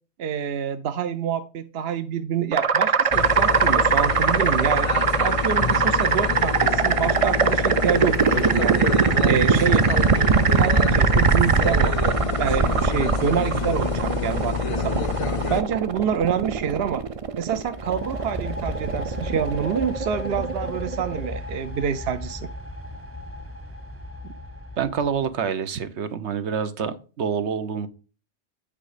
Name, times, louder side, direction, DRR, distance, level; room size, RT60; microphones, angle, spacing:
voice 1, 0.2-4.9 5.2-8.8 9.2-10.0 10.5-15.0 15.5-17.0 17.4-22.5, right 8 dB, 65° right, 0.8 m, -27 dB
sound 1, 2.5-21.3, right 6 dB, 45° right, 0.5 m, -22 dB
sound 2, 3.1-15.6, left 7 dB, 45° left, 0.4 m, -27 dB
sound 3, 17.6-25.4, left 1 dB, 15° right, 0.8 m, -35 dB
voice 2, 24.8-27.9, right 7 dB, 80° right, 1.2 m, -27 dB
9.0 x 5.1 x 4.9 m
omnidirectional pair, 1.1 m